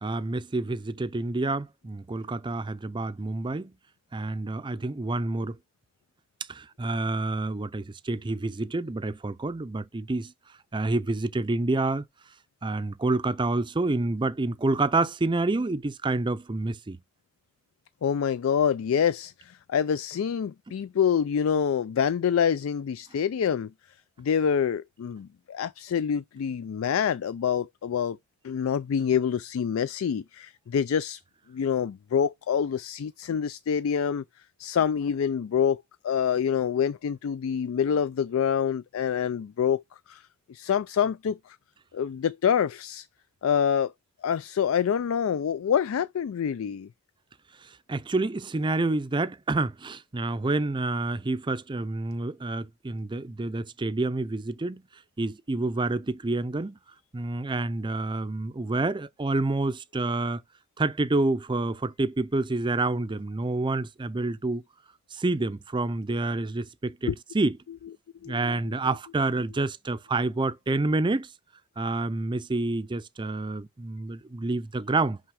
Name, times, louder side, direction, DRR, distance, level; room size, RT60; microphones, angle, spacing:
voice 1, 0.0-3.7 4.1-5.6 6.5-10.3 10.7-12.0 12.6-17.0 47.6-54.8 55.2-56.8 57.1-60.4 60.8-64.6 65.1-67.6 68.3-71.3 71.8-75.2, right 2 dB, 25° right, 0.5 m, -28 dB
voice 2, 18.0-23.7 24.2-28.2 28.4-31.2 31.5-34.2 34.6-40.2 40.5-41.6 41.9-43.1 43.4-43.9 44.2-46.9 67.1-67.2 68.2-68.8, left 7 dB, 80° left, 0.4 m, -26 dB
5.9 x 5.6 x 4.8 m
head